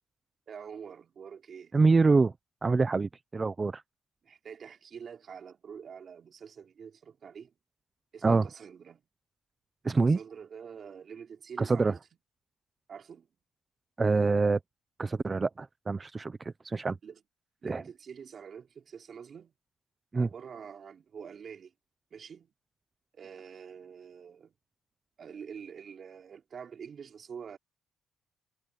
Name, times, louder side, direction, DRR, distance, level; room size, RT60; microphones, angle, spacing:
voice 1, 0.5-1.7 4.2-7.5 8.1-9.0 10.0-12.0 12.9-13.3 17.0-17.2 17.6-19.5 20.1-21.7 22.1-22.5 23.1-24.5 25.2-27.6, right 7 dB, 50° right, 4.8 m, -46 dB
voice 2, 1.7-2.3 2.6-3.8 8.2-8.5 9.8-10.2 11.6-11.9 14.0-14.6 15.0-17.0 17.6-17.8 20.1-20.3, right 4 dB, 30° right, 0.8 m, -25 dB
cardioid pair, 90°, 0 cm